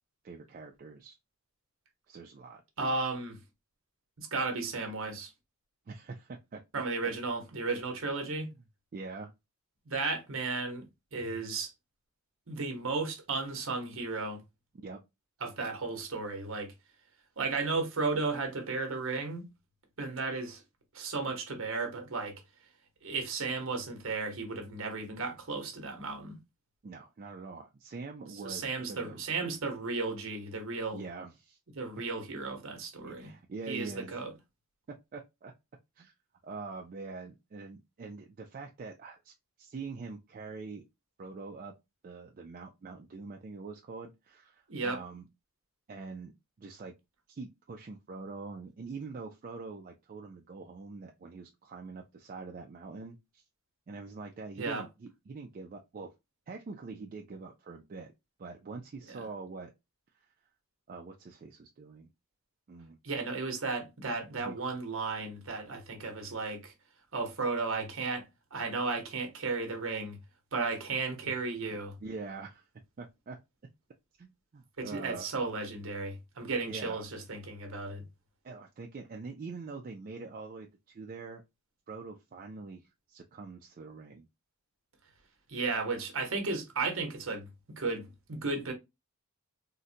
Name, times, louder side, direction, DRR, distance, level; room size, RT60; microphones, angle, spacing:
voice 1, 0.2-1.2 2.1-2.6 5.9-6.8 8.3-8.5 8.9-9.3 14.7-15.0 26.8-29.4 30.9-31.6 33.0-34.2 34.9-35.5 36.0-36.1 36.4-40.8 41.2-41.7 42.0-45.2 45.9-46.3 46.6-46.9 47.3-53.4 53.9-56.1 56.5-58.1 58.4-59.7 60.1-60.3 60.9-62.1 62.7-63.0 64.4-64.6 71.7-72.7 73.0-73.4 74.2-75.3 76.7-77.0 78.4-81.4 81.9-84.3, right 4 dB, 40° right, 0.3 m, -44 dB
voice 2, 2.8-3.4 4.2-5.3 6.7-8.5 9.8-10.8 11.1-11.7 12.5-14.4 15.4-16.7 17.4-19.5 20.0-20.6 20.9-22.4 23.0-26.4 28.4-31.0 31.7-33.3 33.7-34.3 44.7-45.0 54.6-54.8 59.1-59.3 63.0-66.7 67.1-68.3 68.5-70.2 70.5-72.0 74.8-78.0 85.5-88.7, right 3 dB, 60° right, 1.0 m, -34 dB
3.8 x 2.1 x 2.6 m
head